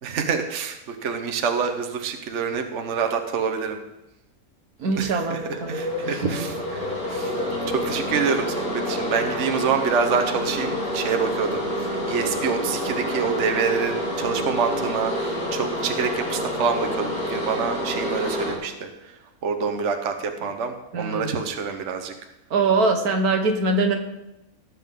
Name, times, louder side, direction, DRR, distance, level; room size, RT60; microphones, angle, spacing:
voice 1, 0.0-3.8 5.0-5.4 5.7-6.5 6.8-7.3 7.7-18.9 19.4-22.1, right 6 dB, 55° right, 5 dB, 1.2 m, -26 dB
voice 2, 4.8-6.5 20.9-21.3 22.5-24.0, right 3 dB, 80° right, 4 dB, 1.7 m, -23 dB
sound 1, 4.9-18.5, left 1 dB, 70° left, 3.2 m, -28 dB
18.0 x 7.6 x 3.7 m, 0.90 s
omnidirectional pair, 1.6 m